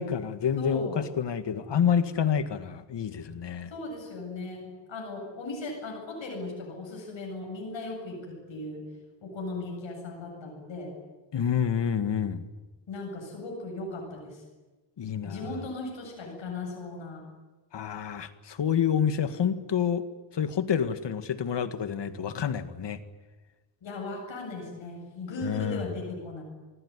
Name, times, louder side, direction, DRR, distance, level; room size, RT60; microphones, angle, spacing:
voice 1, 0.0-3.7 11.3-12.5 15.0-15.5 17.7-20.1 20.3-23.0 25.4-25.9, left 8 dB, 70° left, 10 dB, 2.0 m, -28 dB
voice 2, 0.6-1.1 3.7-8.9 9.2-10.9 12.9-14.4 15.2-17.3 23.8-26.4, left 2 dB, 90° left, 0 dB, 7.9 m, -37 dB
28.0 x 20.0 x 9.9 m, 1.2 s
wide cardioid pair, 120°, 44 cm